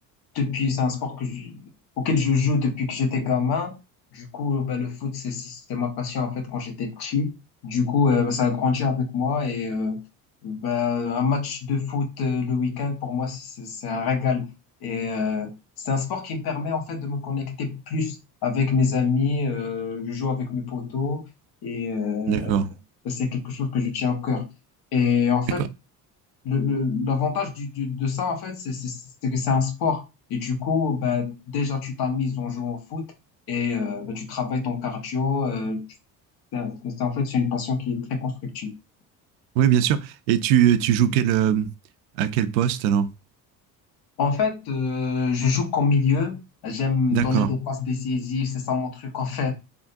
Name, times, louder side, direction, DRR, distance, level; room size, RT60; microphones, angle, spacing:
voice 1, 0.3-1.6 2.0-3.8 4.1-7.3 7.6-10.0 10.4-14.5 14.8-15.5 15.8-18.2 18.4-21.3 21.6-22.6 23.0-24.5 24.9-25.6 26.4-33.0 33.5-35.8 36.5-38.7 44.2-49.5, left 5 dB, 60° left, 1.1 m, -25 dB
voice 2, 22.3-22.7 39.6-41.7 42.2-43.1 47.1-47.5, right 10 dB, 85° right, 0.5 m, -21 dB
3.6 x 2.2 x 2.5 m
supercardioid pair, 80°, 42 cm